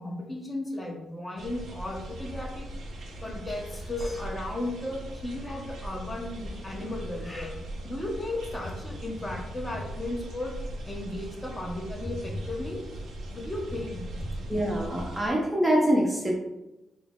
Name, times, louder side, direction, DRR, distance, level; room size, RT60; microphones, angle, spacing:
voice 1, 0.0-2.7 3.2-7.6 7.8-10.6 10.8-12.8 13.3-14.4, left 1 dB, 15° left, 0 dB, 0.7 m, -35 dB
sound 1, 1.4-15.3, right 1 dB, 70° right, 0.7 m, -40 dB
voice 2, 14.5-16.3, equal, 20° right, -1 dB, 0.6 m, -24 dB
3.9 x 2.0 x 3.6 m, 0.95 s
cardioid pair, 120°, 0 cm